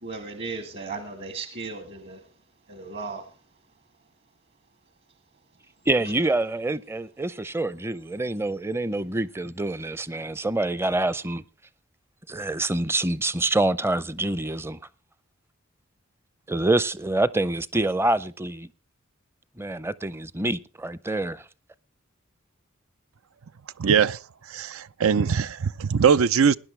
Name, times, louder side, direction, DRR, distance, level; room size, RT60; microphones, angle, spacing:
voice 1, 0.0-2.2 2.7-3.3, right 4 dB, 55° right, 1.7 m, -36 dB
voice 2, 5.9-11.4 12.3-14.8 16.5-18.7 19.6-21.5, right 2 dB, 10° right, 0.5 m, -26 dB
voice 3, 23.8-24.2 24.5-26.5, right 6 dB, 90° right, 0.5 m, -21 dB
20.0 x 10.5 x 3.3 m
head